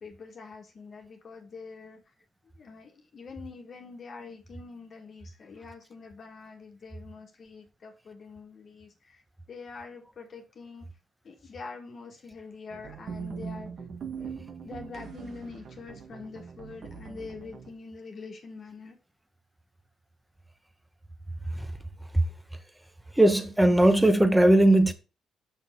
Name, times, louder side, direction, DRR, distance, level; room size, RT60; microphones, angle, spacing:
voice 1, 0.0-2.0 2.6-9.2 9.5-10.9 11.2-13.7 14.1-14.3 14.6-19.0, left 4 dB, 50° left, 1.6 m, -45 dB
sound 1, 12.7-17.7, right 6 dB, 55° right, 1.3 m, -41 dB
voice 2, 23.2-24.9, right 1 dB, 5° right, 1.0 m, -19 dB
6.1 x 5.5 x 3.7 m
cardioid pair, 90°, 0 cm